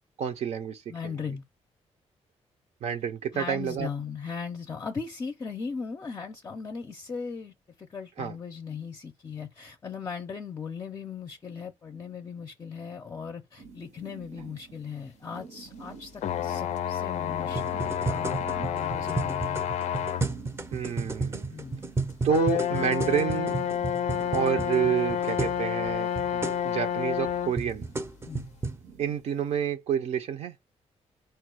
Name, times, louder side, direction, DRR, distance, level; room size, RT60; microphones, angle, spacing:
voice 1, 0.2-1.2 2.8-3.9 8.2-8.3 20.7-21.6 22.2-23.5 24.3-27.8 29.0-30.5, right 8 dB, 70° right, 0.5 m, -29 dB
voice 2, 0.9-1.4 3.3-18.4 18.7-19.6 21.5-21.9 28.2-28.5, left 5 dB, 30° left, 0.5 m, -38 dB
sound 1, 13.6-29.7, right 5 dB, 85° right, 0.9 m, -50 dB
sound 2, 16.2-20.3 21.0-21.1 22.3-27.6, left 9 dB, 85° left, 0.4 m, -29 dB
sound 3, 17.5-25.6 25.9-26.0 26.2-26.6 27.3-28.8, right 3 dB, 20° right, 0.5 m, -33 dB
4.4 x 2.2 x 4.6 m
cardioid pair, 130°, 12 cm